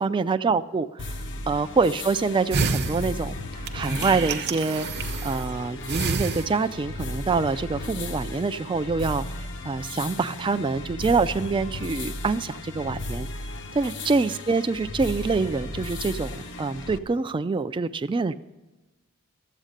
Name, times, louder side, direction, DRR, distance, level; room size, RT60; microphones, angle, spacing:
voice 1, 0.0-4.9 5.2-13.3 13.8-18.3, right 4 dB, 20° right, 9 dB, 0.3 m, -26 dB
sound 1, 1.0-17.0, left 2 dB, 60° left, 0.9 m, -35 dB
sound 2, 2.5-5.5 5.9-6.9 7.3-7.4, right 4 dB, 50° right, 0.8 m, -29 dB
13.0 x 8.2 x 6.5 m, 1.1 s
head